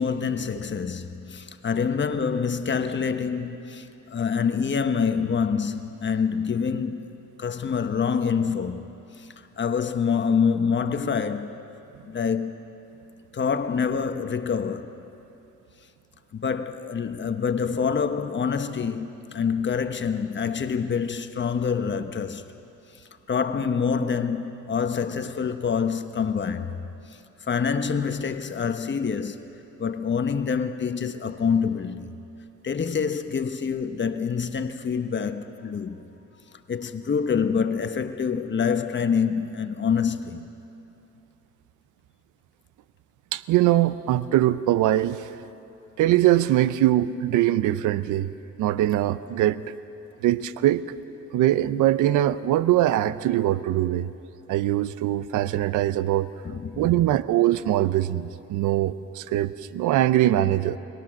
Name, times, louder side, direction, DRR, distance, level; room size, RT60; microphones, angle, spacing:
voice 1, 0.0-7.0 7.4-8.9 9.2-11.5 12.0-12.6 13.3-15.0 16.3-22.4 22.9-26.8 27.1-27.2 27.5-29.5 29.8-32.1 32.6-36.0 36.7-40.5 56.4-56.9, left 6 dB, 40° left, 1.2 m, -26 dB
voice 2, 43.3-45.4 46.0-48.3 48.6-49.6 50.2-50.9 51.3-54.1 54.5-56.3 56.8-60.8, right 13 dB, 85° right, 0.6 m, -22 dB
22.5 x 20.5 x 6.4 m
cardioid pair, 90°, 30 cm